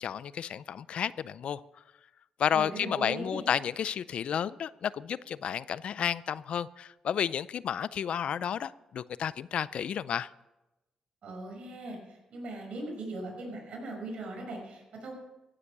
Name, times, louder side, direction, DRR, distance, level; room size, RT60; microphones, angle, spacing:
voice 1, 0.0-1.6 2.4-10.3, left 8 dB, 70° left, 0.4 m, -31 dB
voice 2, 2.5-3.4 11.2-15.1, right 2 dB, 70° right, 5.6 m, -39 dB
15.0 x 9.9 x 6.1 m
cardioid pair, 90°, 2 cm